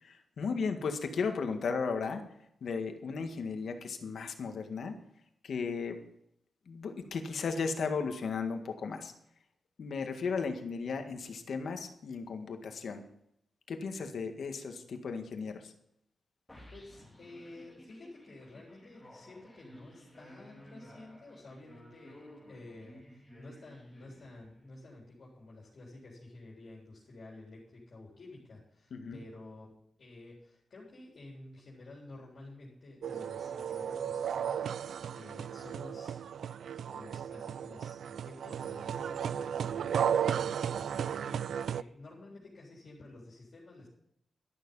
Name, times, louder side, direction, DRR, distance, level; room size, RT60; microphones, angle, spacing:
voice 1, 0.0-2.2 2.6-5.0 5.4-6.0 6.7-9.1 9.8-13.0 13.7-15.7 28.9-29.2, left 5 dB, 65° left, 6 dB, 1.8 m, -35 dB
sound 1, 16.5-24.8, equal, 10° left, 3.3 m, -55 dB
voice 2, 16.7-36.2 36.7-43.9, left 2 dB, 50° left, -4 dB, 3.9 m, -51 dB
sound 2, 33.0-41.8, right 8 dB, 80° right, 0.4 m, -34 dB
12.5 x 12.0 x 5.5 m, 0.76 s
wide cardioid pair, 150°, 0 cm